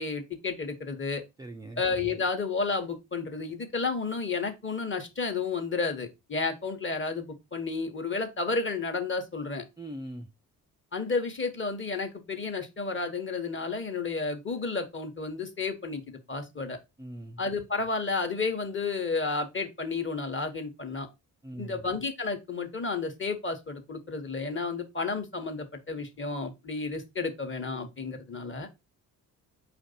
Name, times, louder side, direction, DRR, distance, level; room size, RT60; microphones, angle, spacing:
voice 1, 0.0-1.2 1.8-9.6 10.9-16.8 17.4-21.1 21.6-28.7, left 4 dB, 25° left, 1.1 m, -32 dB
voice 2, 1.4-1.8 9.8-10.3 17.0-17.4 21.4-21.9, right 1 dB, 10° right, 0.4 m, -41 dB
4.8 x 2.5 x 4.0 m
hypercardioid pair, 45°, 46 cm